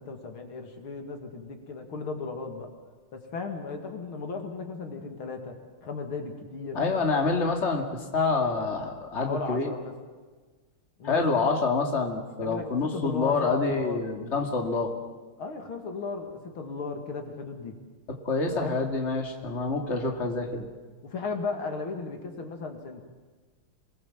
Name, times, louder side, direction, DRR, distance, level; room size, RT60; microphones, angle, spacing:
voice 1, 0.0-2.7 3.1-5.5 5.8-6.8 7.2-7.4 9.1-9.9 11.0-11.3 12.4-12.7 12.9-14.1 15.4-17.7 18.5-18.8 21.0-23.0, left 4 dB, 75° left, 4 dB, 3.2 m, -35 dB
voice 2, 6.7-7.8 8.1-9.7 11.0-14.9 18.2-20.7, left 4 dB, 30° left, 2 dB, 2.5 m, -27 dB
27.5 x 20.0 x 7.3 m, 1.4 s
omnidirectional pair, 2.3 m